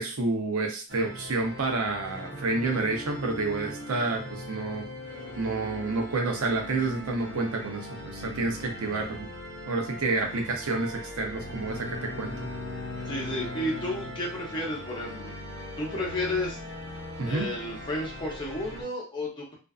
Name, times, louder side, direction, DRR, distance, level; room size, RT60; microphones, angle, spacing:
voice 1, 0.0-4.8 5.4-9.3 9.7-12.3 17.2-17.5, right 3 dB, 90° right, 2 dB, 0.7 m, -29 dB
sound 1, 0.9-18.8, equal, 45° right, 1.0 m, -40 dB
Bowed string instrument, 11.3-14.9, left 3 dB, 60° left, 0.5 m, -40 dB
voice 2, 13.1-15.3 15.8-16.6 17.2-19.5, left 1 dB, 20° left, -3 dB, 0.8 m, -32 dB
2.5 x 2.4 x 2.3 m, 0.34 s
head